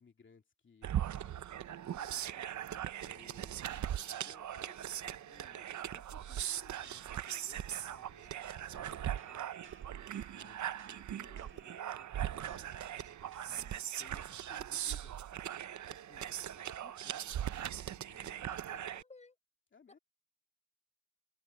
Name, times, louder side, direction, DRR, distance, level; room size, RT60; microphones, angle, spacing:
voice 1, 0.0-15.1 15.9-17.3 18.0-18.6 19.7-20.0, left 5 dB, 40° left, 2.8 m, -63 dB
sound 1, 0.8-19.0, right 11 dB, 65° right, 0.7 m, -40 dB
sound 2, 6.4-8.5 8.7-13.6, right 6 dB, 40° right, 1.3 m, -62 dB
voice 2, 17.7-19.4 19.9-20.0, left 3 dB, 20° left, 4.8 m, -58 dB
wide cardioid pair, 145°, 31 cm